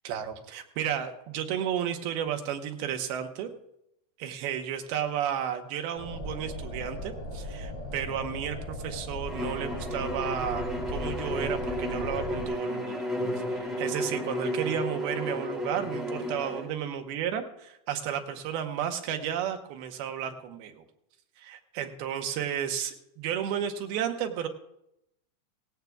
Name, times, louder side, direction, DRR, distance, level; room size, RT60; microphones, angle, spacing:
voice 1, 0.1-3.5 4.2-13.1 13.5-17.4 17.9-20.8 21.4-24.5, right 9 dB, 85° right, 5 dB, 3.0 m, -33 dB
sound 1, 6.0-12.4, left 1 dB, 45° left, 4.7 m, -37 dB
Bowed string instrument, 9.3-16.7, equal, ahead, 1.7 m, -33 dB
17.5 x 16.0 x 2.4 m, 0.81 s
omnidirectional pair, 4.3 m